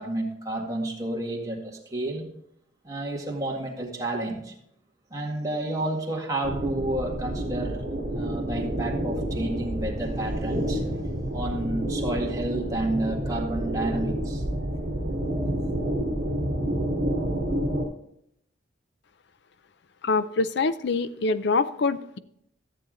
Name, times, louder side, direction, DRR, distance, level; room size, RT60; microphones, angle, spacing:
voice 1, 0.0-2.2 2.8-4.5 5.1-7.8 8.1-10.8 11.3-14.4 15.6-15.7, right 1 dB, 20° right, -1 dB, 1.9 m, -30 dB
sound 1, 6.4-17.8, right 1 dB, 60° right, 2.4 m, -29 dB
voice 2, 20.0-22.2, left 3 dB, 65° left, 14 dB, 0.5 m, -25 dB
13.5 x 7.8 x 3.9 m, 0.74 s
head